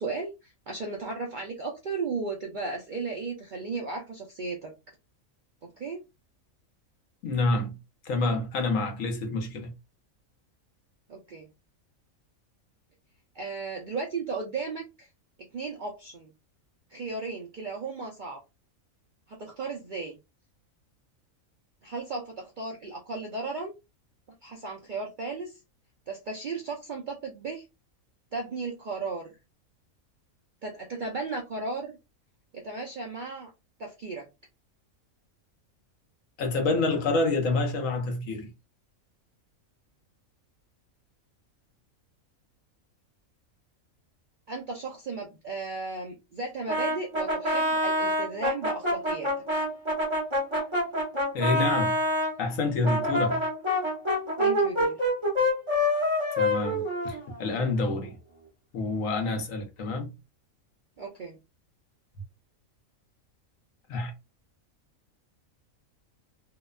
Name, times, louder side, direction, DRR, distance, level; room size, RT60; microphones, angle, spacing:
voice 1, 0.0-4.7 5.8-6.0 11.1-11.5 13.3-15.1 15.5-16.3 16.9-18.4 19.3-20.2 21.8-23.7 24.4-25.6 26.1-27.6 28.3-29.3 30.6-32.0 32.6-33.5 33.8-34.3 44.5-49.3 54.4-55.0 61.0-61.4, right 3 dB, 60° right, 0.5 m, -35 dB
voice 2, 7.2-7.8 8.0-9.7 36.4-38.5 51.3-52.0 52.4-53.4 56.4-58.1 58.7-60.1 63.9-64.1, left 2 dB, 75° left, 1.1 m, -28 dB
Brass instrument, 46.7-52.3 52.8-57.6, left 1 dB, 25° right, 1.0 m, -26 dB
2.8 x 2.1 x 2.3 m
omnidirectional pair, 1.4 m